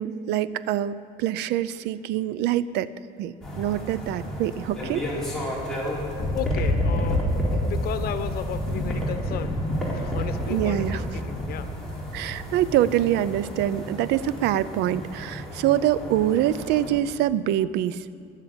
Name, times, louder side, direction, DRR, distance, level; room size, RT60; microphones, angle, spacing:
voice 1, 0.0-2.9 3.2-5.0 5.4-5.6 10.5-11.2 12.1-18.0, right 12 dB, 90° right, 17 dB, 0.6 m, -25 dB
sound 1, 3.4-16.9, equal, 5° left, 4.3 m, -30 dB
voice 2, 6.3-9.6 9.9-11.7, left 9 dB, 65° left, 10 dB, 1.1 m, -34 dB
21.0 x 7.5 x 8.9 m, 2.6 s
cardioid pair, 110°, 17 cm